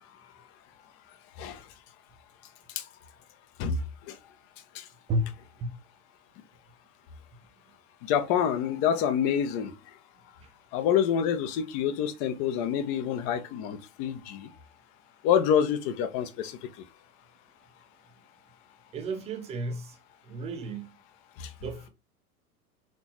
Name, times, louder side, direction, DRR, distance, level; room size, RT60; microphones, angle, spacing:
voice 1, 8.1-9.7 10.7-14.4 15.2-16.5, left 8 dB, 30° left, 0.6 m, -26 dB
voice 2, 18.9-20.0 20.2-20.9 21.6-21.9, right 1 dB, 15° right, 0.5 m, -32 dB
4.3 x 2.9 x 2.9 m
figure-of-eight pair, 85°, 44 cm